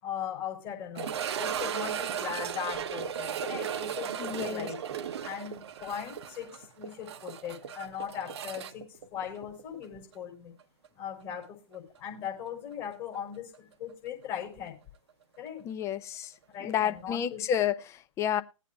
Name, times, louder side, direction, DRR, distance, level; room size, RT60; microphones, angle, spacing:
voice 1, 0.0-4.8 5.2-10.5 11.0-14.8 15.4-15.7 16.5-17.4, left 9 dB, 35° left, 5.4 m, -39 dB
sound 1, 0.9-9.9 10.1-10.2 10.8-10.9 13.5-13.6, right 8 dB, 55° right, 0.8 m, -36 dB
voice 2, 4.2-4.7 15.6-16.3 16.6-18.4, left 10 dB, 15° left, 0.6 m, -30 dB
20.5 x 8.3 x 2.3 m
figure-of-eight pair, 125°, 17 cm